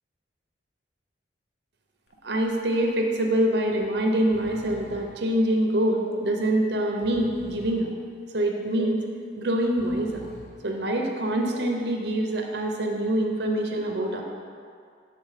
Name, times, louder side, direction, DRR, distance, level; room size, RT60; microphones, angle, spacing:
Breathing, 2.1-2.4 2.8-2.9 3.7-5.2 5.8-6.4 6.9-7.9 8.5-9.1 9.6-10.6 11.2-11.9, left 1 dB, 60° left, 0.8 m, -46 dB
voice 1, 2.2-7.9 8.3-9.0 9.4-10.3 10.6-14.2, right 1 dB, 60° right, 1 dB, 0.8 m, -25 dB
8.7 x 3.6 x 4.9 m, 2.3 s
head